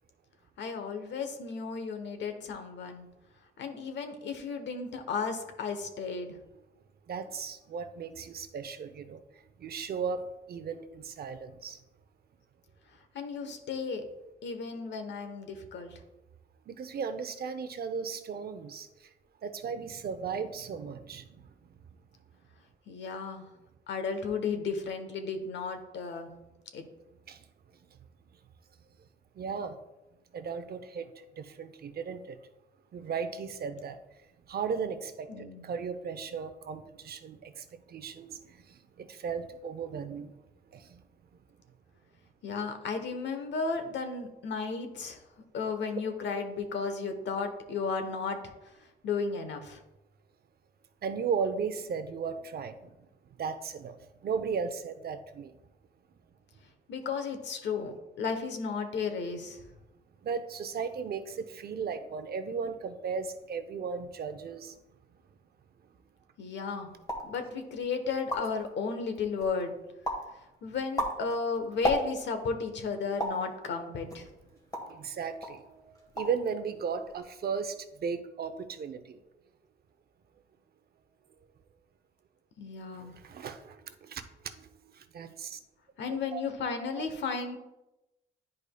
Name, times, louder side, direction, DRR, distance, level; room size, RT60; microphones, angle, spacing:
voice 1, 0.6-3.1 3.6-6.3 13.1-14.0 14.4-16.0 22.9-23.5 23.9-26.3 26.7-26.8 35.3-35.6 42.4-45.2 45.5-48.5 49.0-49.8 56.9-59.6 66.4-66.9 67.2-69.8 70.6-74.3 82.6-83.1 86.0-87.6, left 5 dB, 65° left, 7 dB, 1.0 m, -34 dB
voice 2, 7.1-11.8 16.7-19.1 19.4-21.5 27.3-27.4 29.3-29.8 30.3-32.4 32.9-34.0 34.5-40.4 40.7-41.0 51.0-52.9 53.4-55.6 60.2-64.7 65.9-66.0 74.8-79.2 82.9-85.6 86.1-86.4, right 6 dB, 50° right, 9 dB, 0.6 m, -36 dB
sound 1, 67.0-67.4 67.9-68.0 68.1-68.7 69.2-69.6 70.0-70.3 70.7-72.4 73.2-73.5 74.1-75.0 75.4-75.6 75.9-76.4 76.7-77.2, equal, 20° left, 1.4 m, -34 dB
10.5 x 4.9 x 2.3 m, 0.99 s
cardioid pair, 90°, 20 cm